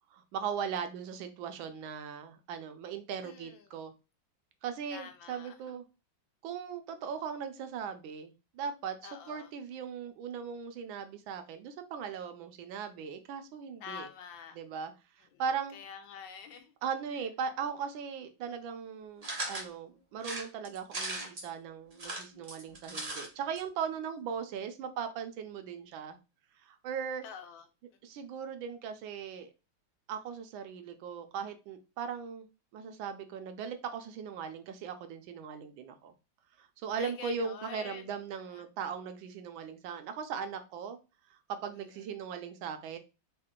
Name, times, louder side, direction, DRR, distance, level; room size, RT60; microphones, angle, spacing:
voice 1, 0.1-3.9 4.6-5.8 6.4-14.1 14.5-14.9 15.2-15.8 16.8-26.2 26.6-27.2 28.0-29.5 30.1-32.5 32.7-36.1 36.6-41.0 41.5-43.0, right 7 dB, 75° right, 1.3 m, -39 dB
voice 2, 3.2-3.7 4.9-5.6 9.0-9.5 13.8-14.6 15.3-15.4 15.7-16.7 27.2-27.7 37.0-38.1 38.5-38.6, left 7 dB, 75° left, 1.3 m, -46 dB
sound 1, 19.2-19.7 20.2-21.5 21.9-23.3 23.6-23.7 23.9-24.0, right 2 dB, 60° right, 0.3 m, -38 dB
3.7 x 2.4 x 3.6 m
omnidirectional pair, 2.2 m